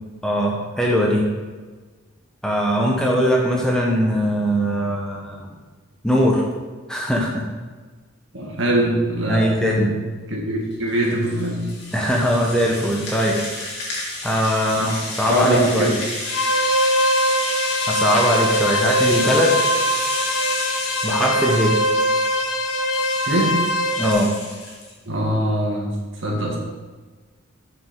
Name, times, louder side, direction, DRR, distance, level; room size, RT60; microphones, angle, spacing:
voice 1, 0.2-1.3 2.4-5.5 6.0-6.4 6.9-7.5 9.3-9.9 11.9-13.4 14.2-15.9 17.9-19.6 21.0-21.7 24.0-24.3, equal, 5° left, -2 dB, 0.8 m, -20 dB
voice 2, 8.3-9.9 10.3-11.7 14.8-14.9 15.3-16.0 23.3-23.6 25.1-26.0 26.2-26.6, right 1 dB, 65° right, -1 dB, 1.6 m, -22 dB
Rattle (instrument), 10.7-24.9, left 2 dB, 55° left, 2.1 m, -31 dB
sound 1, 16.2-24.1, equal, 80° left, 1.1 m, -22 dB
6.5 x 5.4 x 5.1 m, 1.4 s
head